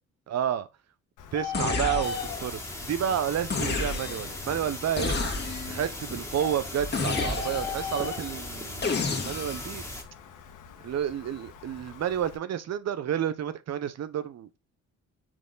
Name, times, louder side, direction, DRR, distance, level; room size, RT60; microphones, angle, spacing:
voice 1, 0.3-0.7 1.3-2.6 2.9-5.1 5.7-9.8 10.8-14.6, right 9 dB, 60° right, 1.0 m, -30 dB
Bird, 1.2-12.4, left 5 dB, 90° left, 1.4 m, -40 dB
sound 1, 1.5-2.5 3.5-4.4 5.0-5.8 6.9-7.8 8.8-9.7, left 3 dB, 35° left, 2.1 m, -30 dB
sound 2, 2.0-10.0, left 1 dB, 10° left, 2.1 m, -38 dB
6.0 x 4.4 x 3.9 m
cardioid pair, 90°, 30 cm